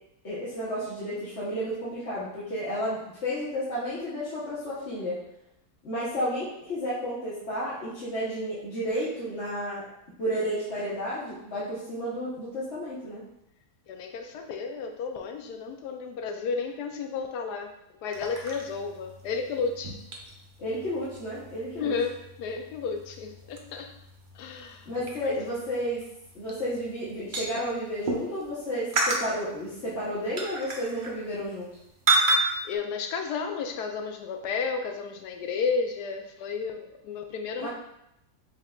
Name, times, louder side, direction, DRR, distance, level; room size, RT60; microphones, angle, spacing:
voice 1, 0.2-5.2 5.8-9.9 10.2-13.2 20.6-21.9 24.9-26.0 26.3-31.7 37.6-37.7, equal, 50° left, -10 dB, 1.2 m, -32 dB
voice 2, 13.9-17.7 18.0-20.0 21.8-23.9 24.3-24.9 25.2-25.3 32.3-32.4 32.6-37.7, left 5 dB, 90° left, 5 dB, 1.1 m, -32 dB
sound 1, 18.1-28.5 28.9-31.8 32.1-32.7, right 2 dB, 55° right, 0.5 m, -32 dB
5.5 x 3.5 x 2.3 m, 0.81 s
omnidirectional pair, 1.7 m